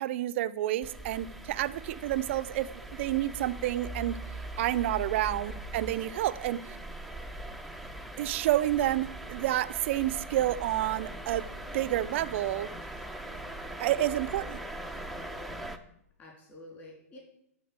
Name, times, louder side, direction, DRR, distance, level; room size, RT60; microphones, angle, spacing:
voice 1, 0.0-4.2 4.6-6.6 8.2-11.5 11.7-12.7 13.8-14.6, right 14 dB, 50° right, 0.5 m, -29 dB
sound 1, 0.8-15.8, right 1 dB, ahead, 0.7 m, -41 dB
voice 2, 16.2-17.2, left 2 dB, 20° left, 3.4 m, -50 dB
12.0 x 4.2 x 8.1 m
hypercardioid pair, 135°, 8 cm